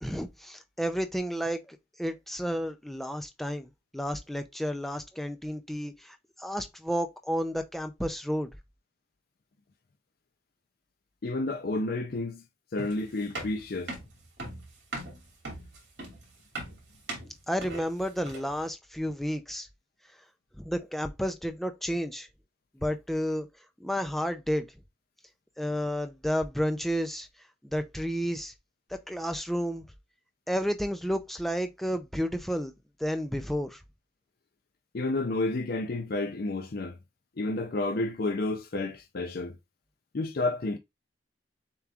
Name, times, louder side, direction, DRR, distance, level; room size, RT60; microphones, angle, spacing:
voice 1, 0.0-3.7 3.9-8.5 17.5-19.7 20.6-22.3 22.8-23.5 23.8-24.7 25.6-27.3 27.6-28.5 29.1-29.8 30.5-32.7 33.0-33.8, equal, ahead, 0.5 m, -31 dB
voice 2, 11.2-12.4 12.7-13.9 34.9-37.0 37.4-39.5 40.1-40.8, left 2 dB, 55° left, 0.5 m, -30 dB
sound 1, 12.8-18.6, right 2 dB, 65° right, 2.6 m, -39 dB
6.8 x 3.0 x 2.4 m
head